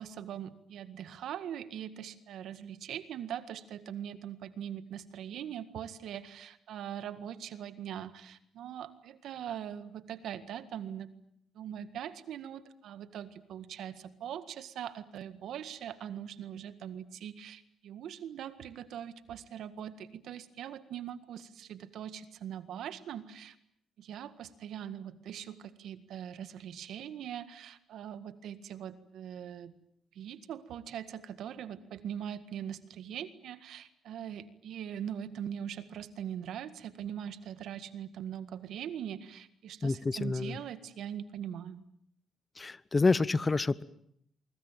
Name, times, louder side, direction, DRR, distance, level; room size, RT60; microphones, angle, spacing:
voice 1, 0.0-11.1 11.6-23.6 24.0-29.7 30.1-41.8, right 9 dB, 75° right, 13 dB, 1.8 m, -41 dB
voice 2, 39.8-40.5 42.6-43.8, left 3 dB, 25° left, 19 dB, 1.0 m, -28 dB
24.5 x 23.0 x 9.1 m, 0.70 s
cardioid pair, 90°, 0 cm